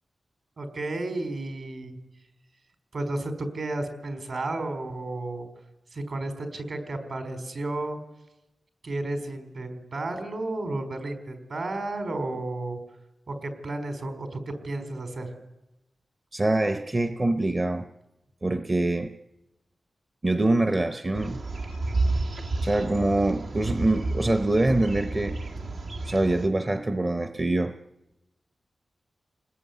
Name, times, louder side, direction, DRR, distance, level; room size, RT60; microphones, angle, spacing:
voice 1, 0.6-2.0 2.9-5.5 5.9-8.0 8.8-12.8 13.3-15.3, right 2 dB, 55° right, 7 dB, 4.6 m, -32 dB
voice 2, 16.3-17.9 18.4-19.1 20.2-21.4 22.6-25.4 26.0-27.7, right 2 dB, 25° right, 9 dB, 0.8 m, -24 dB
sound 1, 21.1-26.5, right 2 dB, 80° right, 2.6 m, -31 dB
29.0 x 20.0 x 9.5 m, 0.98 s
wide cardioid pair, 160°, 0 cm